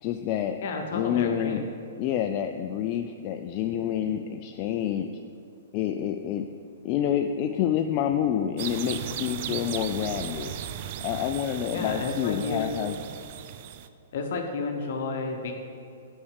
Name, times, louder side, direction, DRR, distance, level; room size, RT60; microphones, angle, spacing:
voice 1, 0.0-0.6 0.9-1.6 2.0-5.1 5.7-6.5 6.8-10.5 11.0-13.0, left 10 dB, 40° left, 6 dB, 0.3 m, -28 dB
voice 2, 0.6-1.6 11.7-12.7 14.1-15.5, left 4 dB, 60° left, 3 dB, 0.8 m, -31 dB
sound 1, 8.6-13.9, right 10 dB, 50° right, 0.4 m, -36 dB
5.6 x 5.6 x 6.5 m, 2.5 s
hypercardioid pair, 130°, 0 cm